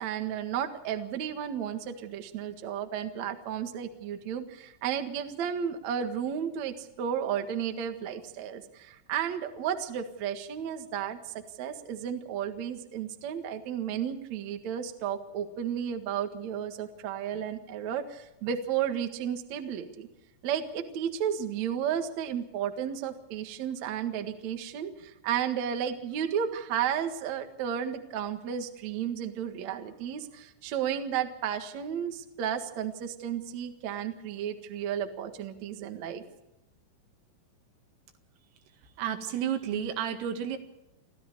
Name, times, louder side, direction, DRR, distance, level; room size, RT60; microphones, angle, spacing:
voice 1, 0.0-20.1 20.4-36.2, right 9 dB, 60° right, 6 dB, 1.8 m, -33 dB
voice 2, 39.0-40.6, right 9 dB, 80° right, 6 dB, 4.6 m, -31 dB
29.0 x 13.0 x 6.9 m, 0.94 s
omnidirectional pair, 5.9 m